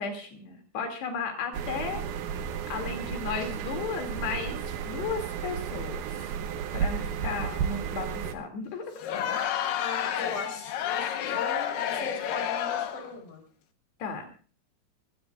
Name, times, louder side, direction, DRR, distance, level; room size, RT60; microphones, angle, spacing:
voice 1, 0.0-2.0 2.3-2.4 2.7-4.6 4.8-6.1 6.7-9.2 14.0-14.2, left 5 dB, 85° left, 4 dB, 4.8 m, -34 dB
sound 1, 1.5-8.4, right 7 dB, 70° right, 2.1 m, -33 dB
Crowd, 9.0-13.1, left 9 dB, 70° left, 2.6 m, -30 dB
voice 2, 9.8-13.4, left 4 dB, 50° left, 2 dB, 5.1 m, -38 dB
23.0 x 17.5 x 2.5 m, 0.39 s
omnidirectional pair, 4.6 m